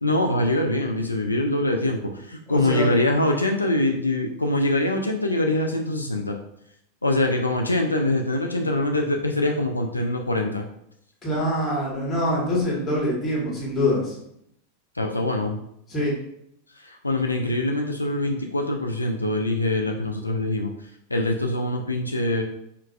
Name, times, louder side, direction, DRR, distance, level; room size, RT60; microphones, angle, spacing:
voice 1, 0.0-6.4 7.0-10.7 15.0-15.6 16.8-20.7 21.1-22.4, left 1 dB, 85° left, 2 dB, 0.3 m, -24 dB
voice 2, 2.5-2.9 11.2-14.1 15.9-16.1, left 1 dB, 15° left, -5 dB, 1.3 m, -24 dB
4.6 x 2.2 x 2.4 m, 0.74 s
figure-of-eight pair, 90°, 0 cm